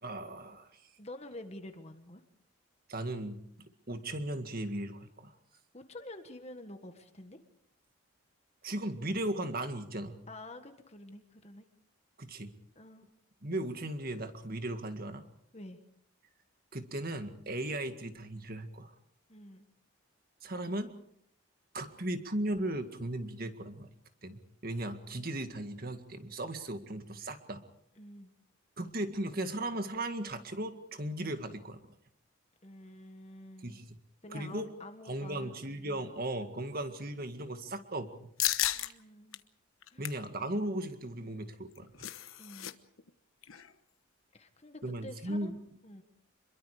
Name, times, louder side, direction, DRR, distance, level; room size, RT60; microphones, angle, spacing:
voice 1, 0.0-0.8 2.9-3.4 3.9-5.3 8.6-10.2 12.2-12.5 13.4-15.2 16.7-18.9 20.4-20.9 21.7-23.9 24.2-27.6 28.8-31.8 33.6-33.8 34.3-34.7 35.1-38.3 40.0-42.1 44.8-45.6, right 1 dB, 45° right, 7 dB, 2.0 m, -37 dB
voice 2, 1.0-2.2 5.7-7.4 10.3-11.6 12.7-13.1 15.5-15.8 19.3-19.7 28.0-28.3 32.6-33.8 34.2-35.6 35.9-36.1 38.7-39.4 39.9-40.0 42.4-42.7 44.3-45.5 45.8-46.0, left 1 dB, 30° left, 6 dB, 1.6 m, -48 dB
sound 1, 38.4-38.9 39.3-39.4 39.8-40.3 41.5-42.7 43.0-43.1 43.4-43.7, left 13 dB, 75° left, 1.1 m, -33 dB
27.0 x 22.5 x 5.0 m, 0.72 s
head